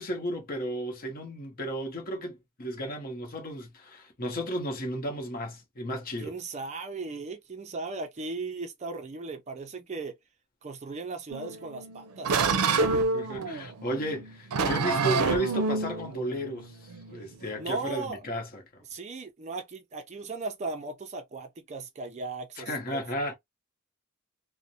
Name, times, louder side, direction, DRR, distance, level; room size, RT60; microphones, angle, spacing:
voice 1, 0.0-6.3 12.9-18.8 22.6-23.3, equal, 40° left, 0.8 m, -34 dB
voice 2, 6.2-10.2 10.6-13.0 14.6-14.8 17.6-18.2 18.9-23.0, right 3 dB, 30° right, 0.4 m, -37 dB
sound 1, 11.3-17.9, right 4 dB, 90° right, 0.5 m, -28 dB
2.5 x 2.0 x 2.6 m
head